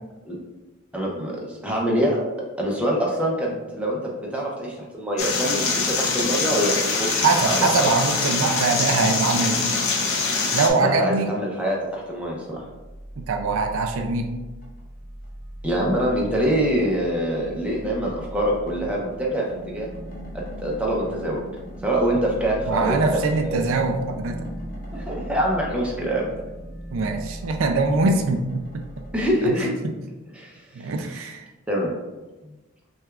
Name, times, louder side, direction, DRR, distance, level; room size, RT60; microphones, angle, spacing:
voice 1, 0.9-2.2 2.6-7.1 7.4-7.9 10.8-12.6 15.6-19.9 20.3-21.4 21.8-23.7 24.9-26.3 29.1-29.7 30.3-31.3 31.7-31.9 32.4-32.5, equal, 5° right, -3 dB, 0.6 m, -25 dB
sound 1, 5.2-10.7, left 4 dB, 80° left, 0.7 m, -24 dB
voice 2, 7.1-9.8 10.5-11.3 13.2-14.3 22.7-24.4 26.9-28.8 29.4-29.5 30.8-31.4, right 3 dB, 75° right, 5 dB, 0.4 m, -23 dB
sound 2, 11.9-29.3, right 1 dB, 45° left, 0.9 m, -38 dB
5.9 x 2.3 x 2.4 m, 1.1 s
head